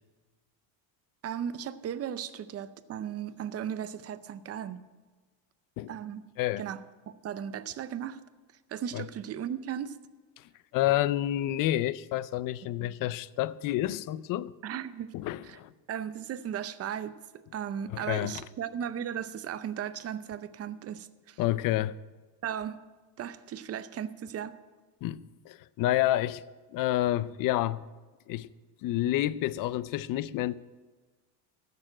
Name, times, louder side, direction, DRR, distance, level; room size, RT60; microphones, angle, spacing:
voice 1, 1.2-4.8 5.9-6.2 6.6-6.8 7.1-8.2 8.7-10.0 12.8-12.9 14.6-15.1 15.4-15.6 15.9-21.4 22.4-22.8 23.2-24.6, right 9 dB, 30° right, 0.5 m, -36 dB
voice 2, 10.7-14.5 15.1-15.7 17.9-18.3 21.4-22.0 25.0-26.4 26.7-27.8 28.3-28.5 28.8-30.5, left 14 dB, 45° left, 0.4 m, -29 dB
13.5 x 6.7 x 8.8 m
cardioid pair, 135°, 48 cm